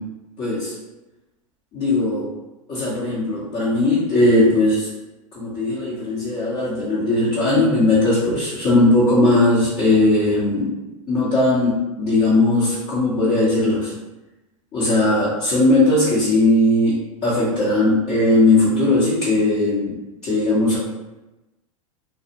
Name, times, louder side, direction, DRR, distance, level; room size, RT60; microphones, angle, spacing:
voice 1, 0.4-0.8 1.7-2.3 2.7-4.9 5.3-10.7 11.1-13.9 14.7-20.8, left 2 dB, 35° left, -10 dB, 0.8 m, -18 dB
2.3 x 2.0 x 2.8 m, 1.0 s
hypercardioid pair, 95°, 18 cm